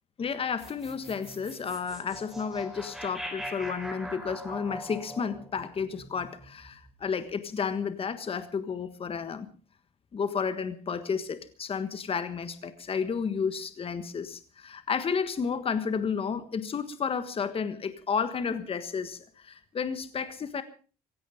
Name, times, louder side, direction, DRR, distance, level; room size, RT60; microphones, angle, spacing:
voice 1, 0.2-9.5 10.1-20.6, left 6 dB, 35° left, 11 dB, 1.5 m, -32 dB
sound 1, 0.6-6.9, equal, ahead, 4.1 m, -42 dB
16.5 x 16.0 x 5.1 m, 0.39 s
cardioid pair, 110°, 17 cm